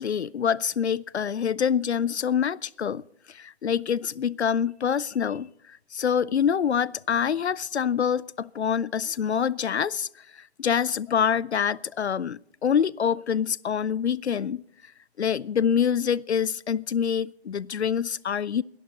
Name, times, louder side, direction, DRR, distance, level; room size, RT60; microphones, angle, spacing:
voice 1, 0.0-14.9 15.2-18.6, left 7 dB, 80° left, 0.5 m, -26 dB
21.5 x 11.5 x 4.0 m
figure-of-eight pair, 125°, 33 cm